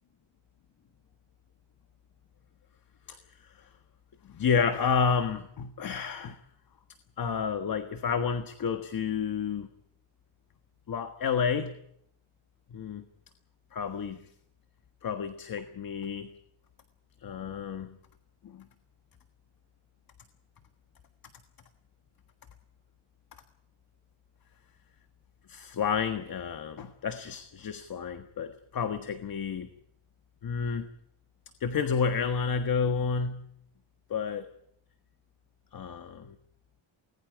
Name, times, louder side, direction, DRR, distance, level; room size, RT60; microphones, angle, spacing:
voice 1, 3.1-3.7 4.2-6.4 7.2-9.7 10.9-11.7 12.7-13.0 13.7-14.2 15.0-16.3 17.2-18.0 18.4-18.7 25.5-29.7 30.4-30.9 31.6-33.4 34.1-34.5 35.7-36.4, left 6 dB, 45° left, 8 dB, 1.5 m, -30 dB
29.0 x 21.0 x 4.8 m, 0.72 s
wide cardioid pair, 170°, 48 cm